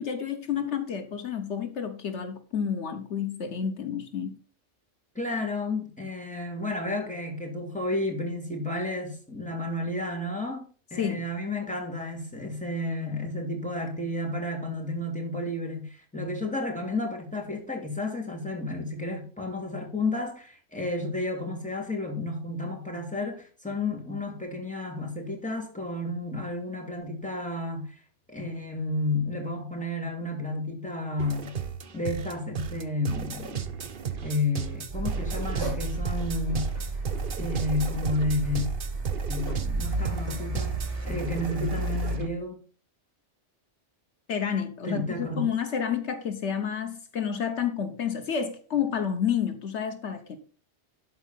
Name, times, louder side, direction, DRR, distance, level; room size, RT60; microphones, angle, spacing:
voice 1, 0.0-4.4 11.0-11.2 44.3-50.4, left 8 dB, 80° left, 1.4 m, -30 dB
voice 2, 5.1-27.9 28.3-31.6 31.9-33.6 34.2-36.7 37.4-38.7 39.3-40.8 41.0-42.6 44.8-45.5, left 2 dB, 5° left, 2.7 m, -31 dB
sound 1, 31.2-42.3, right 7 dB, 50° right, 1.0 m, -35 dB
Car, 34.9-42.2, right 2 dB, 70° right, 5.4 m, -32 dB
12.0 x 4.7 x 5.7 m
omnidirectional pair, 1.2 m